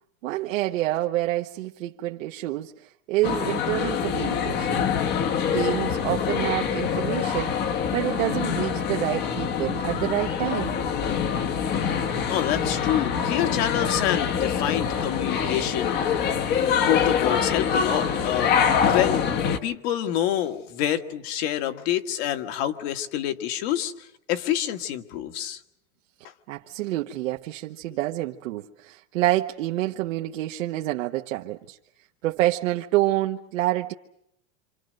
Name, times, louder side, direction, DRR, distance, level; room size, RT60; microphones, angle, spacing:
voice 1, 0.2-4.8 5.5-7.6 7.9-10.8 26.5-31.8 32.2-33.9, right 16 dB, 85° right, 1.2 m, -27 dB
sound 1, 3.2-19.6, left 7 dB, 25° left, 1.0 m, -25 dB
voice 2, 12.3-16.0 16.8-19.2 19.6-25.6, left 11 dB, 55° left, 1.8 m, -27 dB
28.0 x 27.0 x 6.5 m
supercardioid pair, 170°, 38 cm